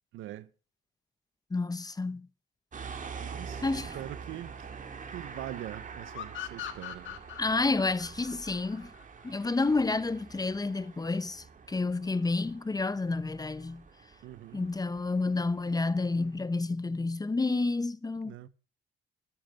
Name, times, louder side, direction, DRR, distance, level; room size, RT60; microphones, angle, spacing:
voice 1, 0.1-0.5 3.2-4.7 5.1-7.2 14.2-14.7 18.2-18.5, right 14 dB, 85° right, 0.9 m, -43 dB
voice 2, 1.5-2.3 3.6-4.0 7.4-8.9 9.2-13.8 14.5-18.3, left 3 dB, 20° left, 0.8 m, -30 dB
sound 1, 2.7-16.4, right 5 dB, 40° right, 2.5 m, -46 dB
sound 2, 6.1-9.5, left 11 dB, 75° left, 1.8 m, -41 dB
13.0 x 10.5 x 5.1 m
cardioid pair, 90°, 20 cm